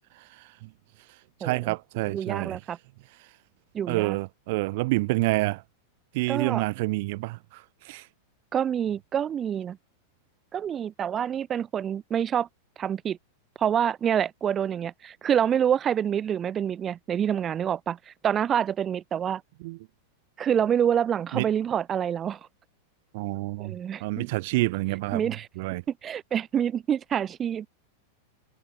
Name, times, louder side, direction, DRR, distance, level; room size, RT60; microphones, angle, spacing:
voice 1, 0.3-0.7 1.4-2.6 3.9-5.6 6.1-8.1 19.6-19.8 21.3-21.4 23.1-25.2 25.6-25.8, right 22 dB, 55° right, 1.3 m, -28 dB
voice 2, 1.4-1.7 2.1-2.8 3.7-4.2 6.3-6.6 8.5-9.8 10.5-12.5 12.8-13.2 13.6-19.4 20.4-22.4 23.6-24.3 25.1-25.5 26.0-27.7, right 9 dB, 20° right, 0.9 m, -27 dB
supercardioid pair, 150°, 0 cm